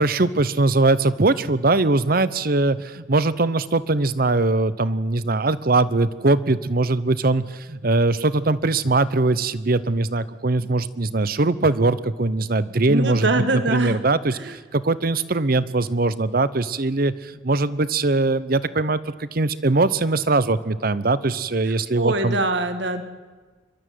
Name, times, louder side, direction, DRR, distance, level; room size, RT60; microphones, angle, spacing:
voice 1, 0.0-13.3 13.7-22.4, right 2 dB, 50° right, 16 dB, 0.9 m, -21 dB
voice 2, 12.9-14.0 14.4-14.5 22.0-23.0, right 2 dB, 70° right, 9 dB, 1.6 m, -23 dB
26.5 x 12.5 x 9.4 m, 1.4 s
head